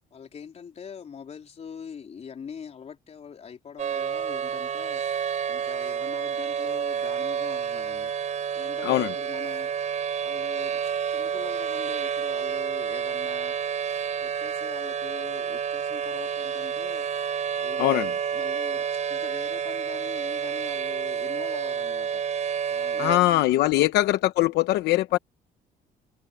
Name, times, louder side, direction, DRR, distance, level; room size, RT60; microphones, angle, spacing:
voice 1, 0.1-5.0 5.5-8.1 8.5-9.7 10.2-13.6 14.2-17.1 17.5-22.2 22.7-23.4 25.1-25.2, left 7 dB, 40° left, 3.9 m, -43 dB
sound 1, 3.8-23.2, right 7 dB, 45° right, 4.9 m, -29 dB
voice 2, 8.8-9.1 17.8-18.1 23.0-25.2, left 16 dB, 80° left, 0.9 m, -22 dB
cardioid pair, 110°, 17 cm